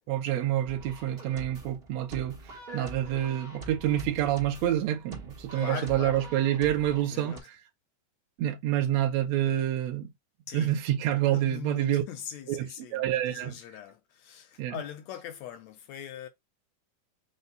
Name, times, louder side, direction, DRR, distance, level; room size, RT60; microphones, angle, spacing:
voice 1, 0.1-7.6 8.4-10.1 10.5-12.0 12.5-13.6 14.6-14.8, right 12 dB, 75° right, 1.8 m, -28 dB
sound 1, 0.6-7.4, right 2 dB, 50° right, 0.7 m, -44 dB
voice 2, 5.5-6.3 6.9-7.5 10.5-10.8 11.3-16.3, left 9 dB, 75° left, 1.8 m, -41 dB
5.4 x 2.2 x 3.9 m
omnidirectional pair, 3.6 m